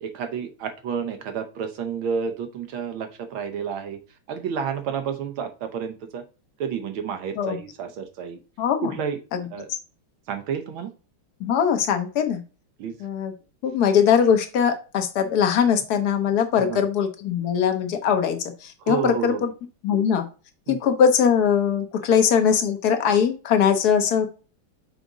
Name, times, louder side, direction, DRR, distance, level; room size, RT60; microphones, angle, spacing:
voice 1, 0.0-4.0 4.3-6.2 6.6-8.4 8.8-9.2 9.5-9.7 10.3-10.9 12.8-13.0 16.6-16.8 18.8-19.4 20.7-20.8, right 7 dB, 70° right, 7 dB, 1.6 m, -30 dB
voice 2, 8.6-8.9 9.3-9.8 11.4-12.4 13.0-13.3 13.6-19.5 19.8-20.2 20.7-24.3, left 7 dB, 55° left, 6 dB, 1.4 m, -21 dB
6.3 x 4.9 x 4.0 m, 0.35 s
omnidirectional pair, 2.4 m